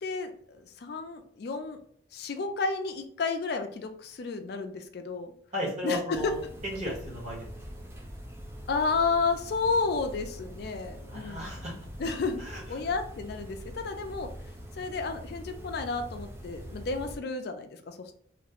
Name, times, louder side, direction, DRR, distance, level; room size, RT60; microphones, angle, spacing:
voice 1, 0.0-1.8 2.1-5.3 5.8-6.2 8.7-11.6 12.0-12.4 12.7-14.3 14.8-18.1, left 4 dB, 55° left, 6 dB, 0.4 m, -32 dB
voice 2, 5.5-6.4 6.6-7.5 11.1-11.8 12.4-12.6, equal, 35° right, -3 dB, 1.1 m, -34 dB
sound 1, 6.1-17.2, equal, 15° right, 0.4 m, -43 dB
3.1 x 2.5 x 2.8 m, 0.62 s
head